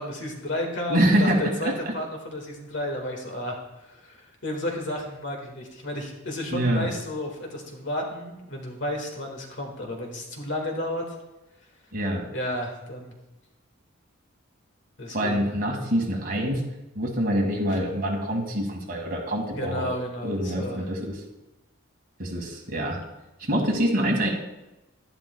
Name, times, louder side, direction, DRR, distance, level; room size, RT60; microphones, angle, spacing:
voice 1, 0.0-11.1 12.3-13.1 15.0-15.5 19.5-20.9, left 1 dB, 60° left, 1 dB, 1.9 m, -32 dB
voice 2, 0.9-1.4 6.5-6.9 11.9-12.3 15.1-16.6 17.0-19.9 20.2-21.2 22.2-23.0 23.4-24.3, right 1 dB, 45° right, 0 dB, 2.0 m, -25 dB
11.0 x 11.0 x 2.3 m, 0.98 s
head